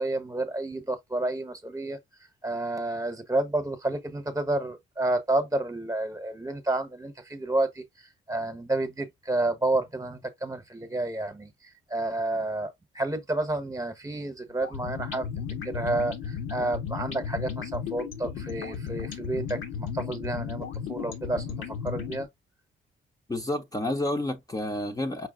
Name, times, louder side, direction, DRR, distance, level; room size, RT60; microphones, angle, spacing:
voice 1, 0.0-2.0 2.4-15.3 15.6-22.3, right 2 dB, 15° right, 1.2 m, -30 dB
sound 1, 14.6-22.3, left 7 dB, 80° left, 1.6 m, -35 dB
voice 2, 23.3-25.3, left 1 dB, 20° left, 0.9 m, -30 dB
5.7 x 2.3 x 3.7 m
cardioid pair, 90°, 20 cm